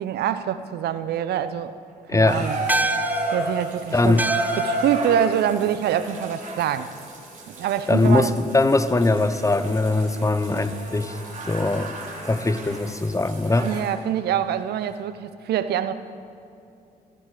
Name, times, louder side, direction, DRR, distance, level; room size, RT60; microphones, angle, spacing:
voice 1, 0.0-1.7 2.1-4.2 4.6-6.9 7.5-8.3 13.6-16.0, right 10 dB, 70° right, 13 dB, 0.7 m, -25 dB
voice 2, 2.1-2.5 3.9-4.3 7.9-11.2 11.5-11.9 12.2-13.7, left 2 dB, 20° left, 12 dB, 0.9 m, -21 dB
Water tap faucet / Bathtub (filling or washing), 2.3-13.9 14.8-14.9, right 2 dB, 50° right, 3.9 m, -32 dB
sound 1, 2.7-7.4, right 2 dB, 10° right, 0.7 m, -31 dB
14.5 x 14.5 x 5.0 m, 2.5 s
hypercardioid pair, 50°, 17 cm